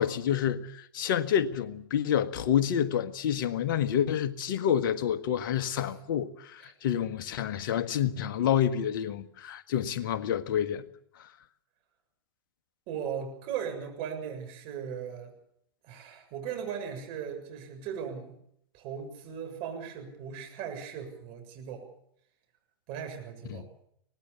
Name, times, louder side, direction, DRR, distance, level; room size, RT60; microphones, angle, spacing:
voice 1, 0.0-10.8 23.5-23.6, left 9 dB, 60° left, 1.5 m, -28 dB
voice 2, 12.9-15.3 15.8-18.3 18.7-21.8 22.9-23.7, right 8 dB, 50° right, 7.1 m, -38 dB
24.0 x 19.0 x 7.0 m
hypercardioid pair, 100°, 12 cm